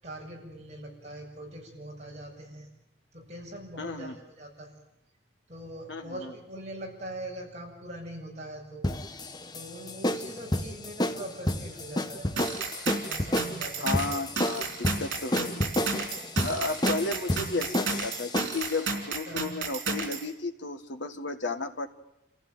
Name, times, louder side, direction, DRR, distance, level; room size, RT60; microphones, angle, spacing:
voice 1, 0.0-2.7 3.1-4.8 5.5-8.9 9.5-12.5 13.1-14.2 14.5-14.6 19.3-19.4, right 1 dB, 35° right, -2 dB, 7.2 m, -42 dB
voice 2, 3.8-4.2 5.9-6.3 13.8-16.0 16.4-21.9, left 3 dB, 70° left, 6 dB, 1.7 m, -33 dB
sound 1, 8.8-18.7, left 1 dB, 20° left, 1.0 m, -30 dB
sound 2, 12.4-20.3, right 4 dB, 80° right, 3.8 m, -33 dB
28.0 x 15.5 x 9.2 m, 0.92 s
head